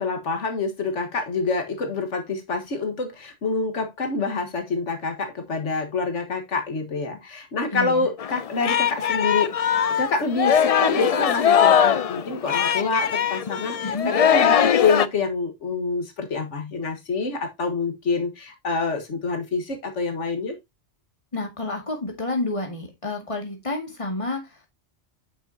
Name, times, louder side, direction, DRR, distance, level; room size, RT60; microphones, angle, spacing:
voice 1, 0.0-9.5 10.0-20.6, left 4 dB, 90° left, 1.9 m, -27 dB
voice 2, 7.7-8.1 13.8-14.1 21.3-24.8, left 2 dB, 25° left, 2.2 m, -30 dB
Singing, 8.2-15.1, left 8 dB, 55° left, 0.4 m, -21 dB
8.8 x 6.4 x 2.8 m
omnidirectional pair, 1.2 m